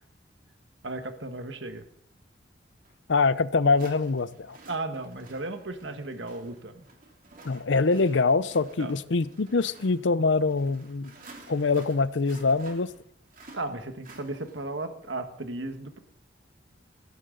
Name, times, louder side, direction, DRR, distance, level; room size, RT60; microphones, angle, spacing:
voice 1, 0.8-1.9 4.7-6.8 8.8-8.9 13.5-16.0, right 2 dB, 80° right, 7 dB, 1.5 m, -35 dB
sound 1, 2.9-3.0 3.8-14.8, right 2 dB, 50° right, 3.0 m, -52 dB
voice 2, 3.1-4.6 7.4-11.1 11.5-12.9, left 4 dB, 80° left, 16 dB, 0.7 m, -24 dB
18.0 x 15.5 x 3.9 m, 0.66 s
head